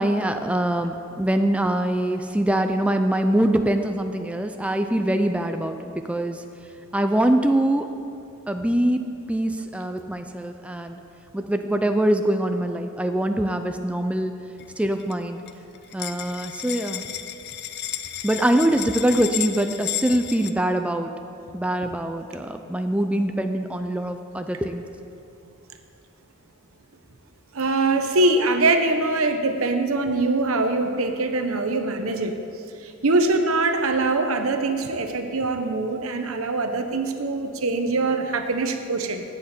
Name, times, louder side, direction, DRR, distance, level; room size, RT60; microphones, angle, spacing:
voice 1, 0.0-6.4 6.9-7.9 8.5-9.0 9.3-11.0 11.3-14.3 14.8-15.4 15.9-17.0 18.2-21.1 21.5-24.8, right 1 dB, 5° right, 6 dB, 0.4 m, -23 dB
sound 1, 14.6-15.1 15.5-15.6 15.8-20.5, left 11 dB, 50° left, 0.5 m, -32 dB
voice 2, 27.5-32.3 32.8-39.2, right 2 dB, 85° right, 6 dB, 0.9 m, -23 dB
15.0 x 8.5 x 4.4 m, 2.6 s
head